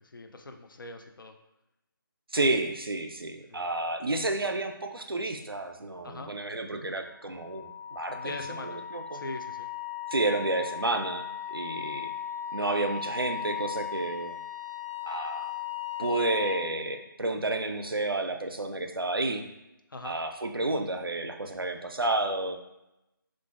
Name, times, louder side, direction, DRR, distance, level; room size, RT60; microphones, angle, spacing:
voice 1, 0.0-1.4 3.5-3.7 6.0-6.3 8.1-8.8 9.1-9.7 19.9-20.2, left 2 dB, 65° left, 5 dB, 0.4 m, -41 dB
voice 2, 2.3-8.2 8.5-9.2 10.1-12.1 12.5-14.4 15.0-15.5 16.0-19.4 20.0-22.6, right 2 dB, 90° right, 6 dB, 0.4 m, -30 dB
Wind instrument woodwind instrument, 7.3-16.7, left 9 dB, 5° left, 0.6 m, -37 dB
3.8 x 2.4 x 2.4 m, 0.91 s
figure-of-eight pair, 150°, 12 cm